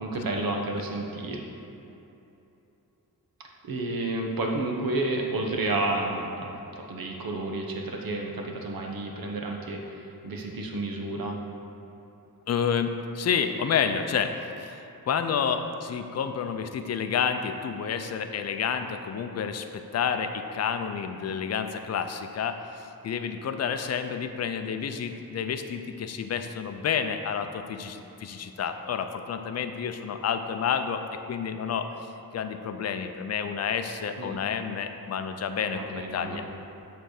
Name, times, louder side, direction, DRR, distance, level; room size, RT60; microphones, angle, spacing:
voice 1, 0.0-1.4 3.6-11.4 34.2-34.4 35.7-36.4, right 2 dB, 70° right, 1 dB, 1.0 m, -31 dB
voice 2, 12.5-31.0 31.3-31.9 32.3-36.4, left 7 dB, 45° left, 7 dB, 0.5 m, -30 dB
8.7 x 3.4 x 6.5 m, 2.9 s
wide cardioid pair, 145°, 36 cm